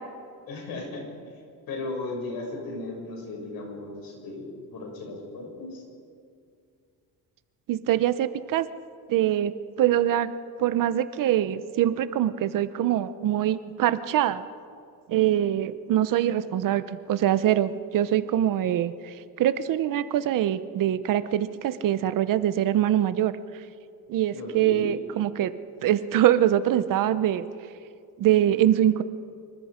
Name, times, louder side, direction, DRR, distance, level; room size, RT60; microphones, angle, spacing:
voice 1, 0.5-1.0 1.7-5.8 24.3-24.8, left 2 dB, 65° left, 0 dB, 6.9 m, -36 dB
voice 2, 7.7-8.7 9.1-9.5 9.8-10.3 10.6-14.4 15.1-23.3 24.1-25.5 25.8-27.4 28.2-29.0, right 11 dB, 55° right, 13 dB, 0.8 m, -23 dB
26.0 x 23.5 x 5.1 m, 2.3 s
cardioid pair, 165°, 38 cm